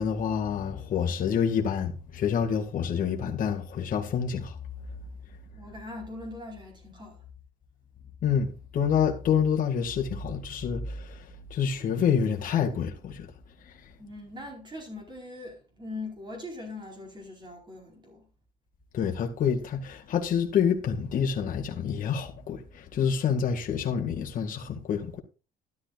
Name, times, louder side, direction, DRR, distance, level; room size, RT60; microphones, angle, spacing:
voice 1, 0.0-4.6 8.2-11.2 11.5-13.3 13.6-13.7 18.9-25.2, left 7 dB, 55° left, 1.9 m, -27 dB
voice 2, 5.5-7.2 14.0-18.3, left 2 dB, 25° right, 4.4 m, -41 dB
13.0 x 11.5 x 2.4 m
cardioid pair, 110°, 17 cm